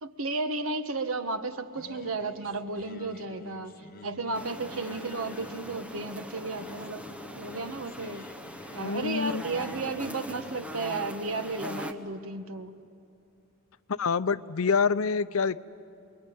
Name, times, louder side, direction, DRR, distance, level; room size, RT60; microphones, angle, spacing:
voice 1, 0.0-8.3 8.7-12.7, right 3 dB, 80° right, 1.3 m, -33 dB
Singing, 1.7-12.9, left 2 dB, 45° left, 1.0 m, -49 dB
sound 1, 4.3-11.9, left 1 dB, 5° right, 1.0 m, -42 dB
voice 2, 8.8-9.4 13.9-15.6, left 5 dB, 85° left, 0.6 m, -26 dB
27.0 x 22.5 x 9.4 m
head